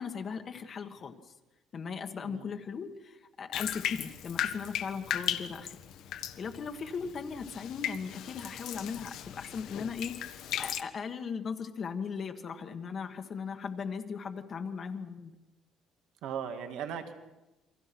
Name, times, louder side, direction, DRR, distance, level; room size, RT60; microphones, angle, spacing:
voice 1, 0.0-1.3 1.7-5.8 6.4-15.3, left 6 dB, 35° left, 5 dB, 1.5 m, -38 dB
Bathtub (filling or washing), 3.5-10.8, left 10 dB, 65° left, 1.5 m, -37 dB
voice 2, 16.2-17.1, right 8 dB, 75° right, 6 dB, 2.5 m, -37 dB
29.0 x 24.5 x 6.1 m, 1.0 s
cardioid pair, 170°, 0 cm